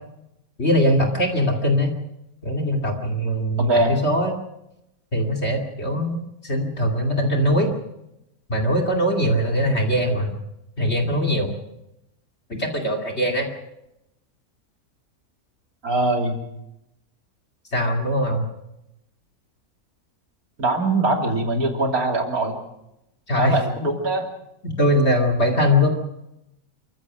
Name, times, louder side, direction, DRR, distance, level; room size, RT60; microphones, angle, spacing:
voice 1, 0.6-1.9 2.4-4.3 5.1-7.7 8.5-10.3 10.8-11.5 12.5-13.5 17.7-18.5 23.3-23.6 24.6-25.9, equal, 45° left, 5 dB, 2.8 m, -21 dB
voice 2, 3.6-4.0 15.8-16.4 20.6-22.6 23.4-24.3, right 2 dB, 75° right, 2 dB, 3.4 m, -22 dB
28.0 x 15.5 x 6.2 m, 0.86 s
omnidirectional pair, 1.6 m